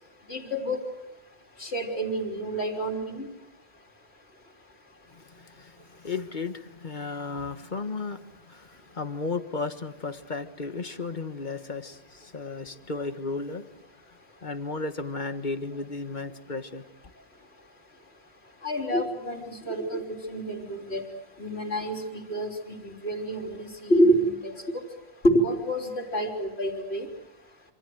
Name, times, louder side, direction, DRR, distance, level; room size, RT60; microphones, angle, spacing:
voice 1, 0.3-0.8 1.6-3.3 18.6-21.1 21.4-24.8 25.2-27.1, right 1 dB, 80° left, 3.9 m, -27 dB
voice 2, 5.1-8.2 8.5-13.7 14.4-16.9 17.2-17.3, left 3 dB, 50° left, 1.5 m, -34 dB
27.0 x 26.5 x 7.9 m
omnidirectional pair, 1.1 m